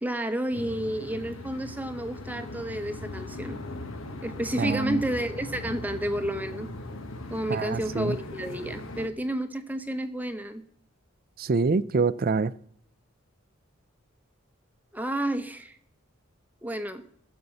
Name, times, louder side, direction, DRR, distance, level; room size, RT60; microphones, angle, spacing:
voice 1, 0.0-3.6 4.2-6.7 7.3-10.6 14.9-15.8 16.6-17.0, right 1 dB, 10° right, 9 dB, 0.8 m, -31 dB
sound 1, 0.5-9.1, left 2 dB, 80° left, 1.4 m, -39 dB
voice 2, 4.6-5.0 7.5-8.2 11.4-12.5, right 4 dB, 45° right, 16 dB, 0.5 m, -25 dB
15.0 x 7.0 x 7.9 m, 0.67 s
head